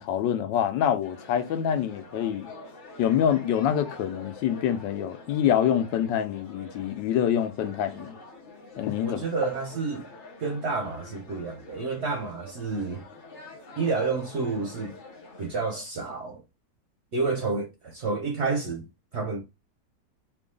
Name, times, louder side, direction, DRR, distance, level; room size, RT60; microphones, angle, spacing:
voice 1, 0.0-2.5 3.0-8.2 8.8-9.2, left 9 dB, 90° left, 1.3 m, -26 dB
sound 1, 1.0-15.7, left 2 dB, 40° left, 0.7 m, -46 dB
voice 2, 9.0-10.1 10.4-13.0 13.8-14.9 15.4-16.4 17.1-18.9 19.1-19.4, right 4 dB, 60° right, 0.7 m, -29 dB
4.7 x 2.4 x 3.7 m
omnidirectional pair, 1.9 m